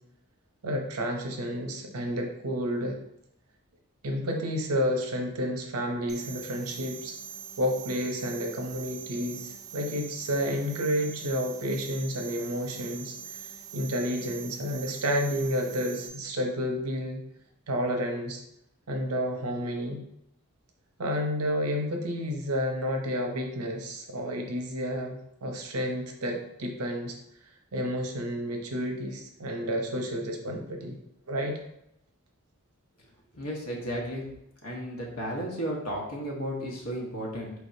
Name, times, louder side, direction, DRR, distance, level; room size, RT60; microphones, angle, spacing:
voice 1, 0.6-3.0 4.0-7.1 7.6-17.2 17.7-18.4 18.9-20.0 21.0-27.2 27.7-31.0 31.3-31.6, equal, 80° right, 3 dB, 0.8 m, -30 dB
sound 1, 6.1-16.1, right 8 dB, 20° right, 0.3 m, -43 dB
voice 2, 33.3-34.2 34.6-37.5, equal, 90° left, -2 dB, 1.2 m, -33 dB
4.6 x 3.4 x 2.7 m, 0.78 s
head